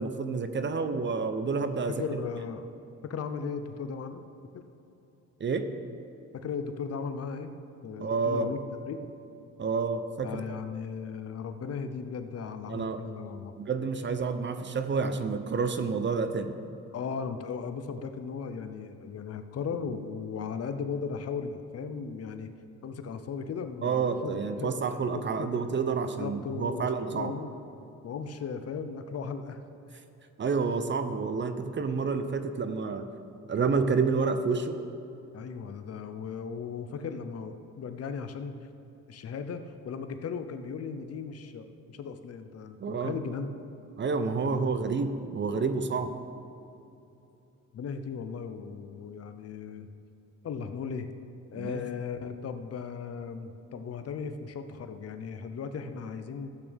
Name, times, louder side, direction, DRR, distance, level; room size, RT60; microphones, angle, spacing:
voice 1, 0.0-2.0 5.4-5.7 8.0-8.5 9.6-10.4 12.7-13.0 13.6-16.5 23.8-27.3 30.4-33.1 33.5-34.8 42.8-43.1 44.0-46.1 51.6-51.8, right 5 dB, 40° right, 9 dB, 0.7 m, -29 dB
voice 2, 1.9-2.7 3.0-4.2 4.5-4.6 6.3-7.5 7.8-8.6 8.9-9.1 10.2-13.5 16.9-22.5 22.8-24.8 25.1-25.5 25.9-27.6 28.0-29.6 35.3-38.6 39.1-43.5 44.4-44.7 47.7-49.9 50.4-51.1 51.5-56.5, left 6 dB, 55° left, 9 dB, 0.8 m, -37 dB
14.0 x 8.5 x 3.5 m, 2.9 s
cardioid pair, 90°, 30 cm